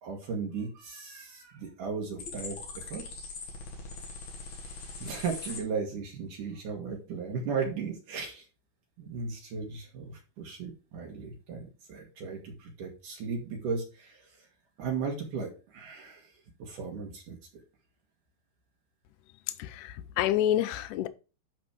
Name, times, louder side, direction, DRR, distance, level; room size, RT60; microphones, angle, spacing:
voice 1, 0.0-3.0 5.0-8.4 9.0-14.2 14.8-16.3 16.6-17.4, right 5 dB, 65° right, 2.9 m, -36 dB
bottle o pop, 2.2-5.6, left 4 dB, 55° left, 2.6 m, -41 dB
voice 2, 19.6-21.1, left 12 dB, 80° left, 1.9 m, -28 dB
11.0 x 4.1 x 4.7 m
omnidirectional pair, 4.3 m